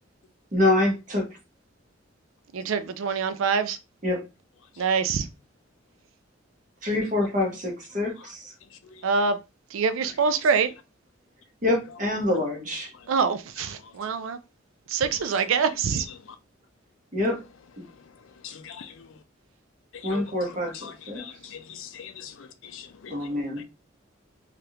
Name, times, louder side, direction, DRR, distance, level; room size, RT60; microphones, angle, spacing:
voice 1, 0.5-1.4 4.0-4.3 6.8-8.5 11.6-12.9 17.1-17.4 20.0-21.2 23.1-23.6, left 2 dB, 40° right, 1.0 m, -26 dB
voice 2, 2.5-3.8 4.8-5.3 9.0-9.4 9.7-10.7 13.1-14.4 14.9-16.1, right 5 dB, 90° right, 0.4 m, -25 dB
voice 3, 18.4-19.2 19.9-23.3 23.6-23.7, left 7 dB, 80° left, 0.5 m, -42 dB
3.3 x 2.4 x 2.8 m
head